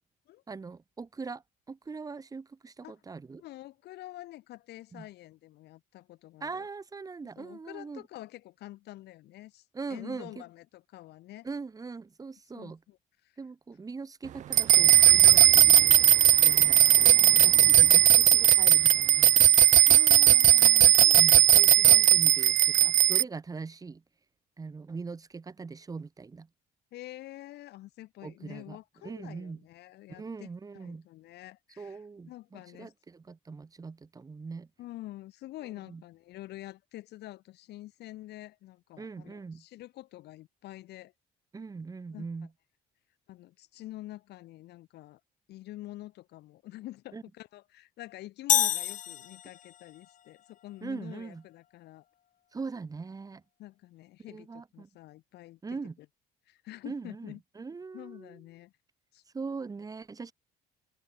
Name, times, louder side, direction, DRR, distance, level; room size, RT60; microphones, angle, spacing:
voice 1, 0.5-1.4 1.7-3.4 4.9-5.1 6.4-8.0 9.7-10.4 11.4-12.8 13.4-19.5 21.1-24.0 24.6-26.5 28.2-28.8 29.0-29.6 30.1-31.0 31.8-34.7 35.9-36.0 39.0-39.6 41.5-42.5 47.1-47.2 50.8-51.4 52.5-53.4 54.3-54.9 55.6-55.9 56.8-58.4 59.3-60.3, right 4 dB, 20° right, 1.1 m, -41 dB
voice 2, 3.4-6.7 7.4-11.5 12.5-13.0 13.2-13.4 19.9-21.8 26.9-30.5 30.7-32.9 34.8-41.1 42.1-42.3 43.3-45.2 45.5-52.1 53.6-55.8 56.5-57.4 57.9-58.7 59.1-59.2, left 16 dB, 80° left, 6.5 m, -47 dB
sound 1, 14.5-23.2, right 12 dB, 45° right, 0.4 m, -18 dB
sound 2, 48.5-49.9, left 10 dB, 50° left, 0.9 m, -27 dB
open air
cardioid pair, 110°, 17 cm